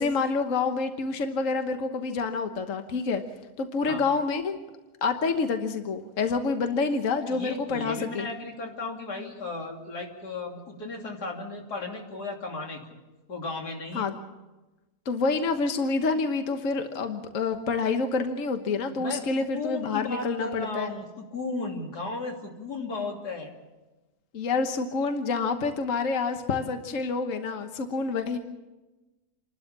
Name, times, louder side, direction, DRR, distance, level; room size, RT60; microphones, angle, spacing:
voice 1, 0.0-3.2 3.6-4.6 5.0-8.3 13.9-14.1 15.0-20.9 24.3-28.4, left 4 dB, 55° left, 6 dB, 1.5 m, -27 dB
voice 2, 7.3-12.8 13.3-14.1 18.9-23.5, left 3 dB, 90° left, 1 dB, 3.5 m, -35 dB
29.0 x 12.5 x 7.4 m, 1.1 s
omnidirectional pair, 1.7 m